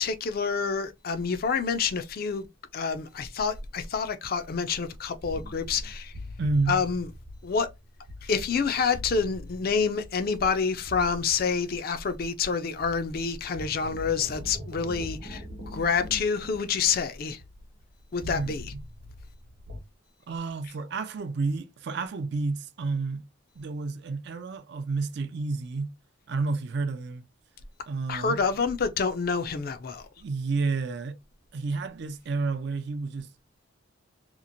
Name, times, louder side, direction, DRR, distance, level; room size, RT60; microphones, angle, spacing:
voice 1, 0.0-2.5 2.7-6.1 6.7-7.1 7.4-7.7 8.2-15.4 15.7-17.4 18.1-18.7 28.1-30.1, left 5 dB, 50° left, 0.4 m, -28 dB
sound 1, 5.2-12.5 12.7-19.8, left 1 dB, 85° right, 0.9 m, -43 dB
voice 2, 6.4-6.8 18.3-18.8 20.3-23.2 23.6-25.9 26.3-27.2 27.9-28.4 30.2-31.2 31.5-33.3, right 3 dB, 55° right, 0.4 m, -30 dB
2.9 x 2.4 x 2.5 m
head